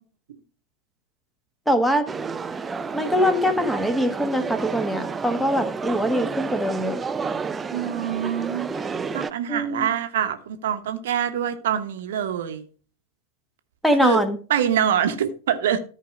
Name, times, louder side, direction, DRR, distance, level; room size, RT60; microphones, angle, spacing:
voice 1, 1.7-2.0 2.9-7.0 9.5-9.9 13.8-14.4, equal, ahead, 1.3 m, -22 dB
sound 1, 2.1-9.3, right 5 dB, 15° right, 0.5 m, -30 dB
voice 2, 7.7-8.7 9.1-12.6 14.0-14.2 14.5-15.8, right 9 dB, 60° right, 1.0 m, -25 dB
13.5 x 5.1 x 4.9 m
figure-of-eight pair, 90°, 0 cm